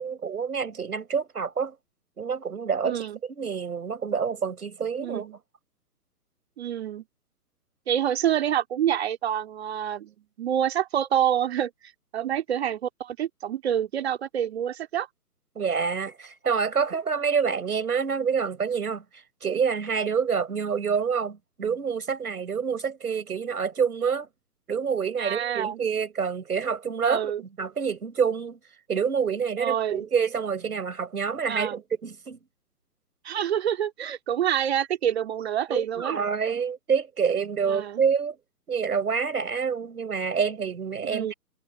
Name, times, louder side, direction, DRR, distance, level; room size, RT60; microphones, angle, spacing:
voice 1, 0.0-1.8 2.2-5.3 15.5-24.3 24.7-28.6 28.9-32.4 35.7-38.4 38.7-41.3, right 6 dB, 65° right, 6.2 m, -27 dB
voice 2, 2.8-3.2 5.0-5.4 6.6-7.0 7.9-15.1 25.2-25.8 27.0-27.4 29.6-30.0 31.5-31.8 33.2-36.2 37.7-38.0 41.0-41.3, right 10 dB, 40° right, 2.4 m, -27 dB
figure-of-eight pair, 135°, 49 cm